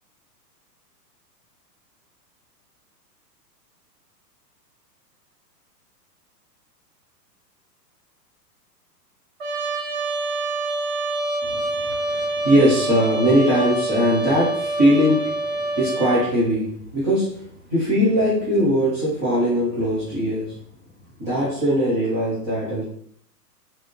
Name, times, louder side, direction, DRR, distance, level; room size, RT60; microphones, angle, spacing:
Trumpet, 9.4-16.3, right 2 dB, 55° right, 1.4 m, -26 dB
voice 1, 11.5-17.3 17.7-20.5 21.2-22.8, equal, 10° right, -12 dB, 0.3 m, -20 dB
3.7 x 2.6 x 2.9 m, 0.65 s
hypercardioid pair, 125°, 48 cm